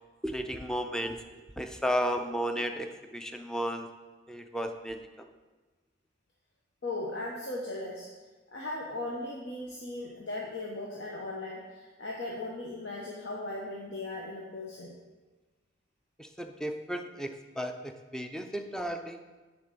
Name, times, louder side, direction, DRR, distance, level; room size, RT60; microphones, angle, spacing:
voice 1, 0.2-1.3 1.6-3.9 4.3-5.3 16.2-19.2, equal, 5° left, 6 dB, 0.5 m, -34 dB
voice 2, 6.8-8.1 8.5-14.9, left 2 dB, 70° left, -3 dB, 1.0 m, -37 dB
6.9 x 4.9 x 6.7 m, 1.2 s
head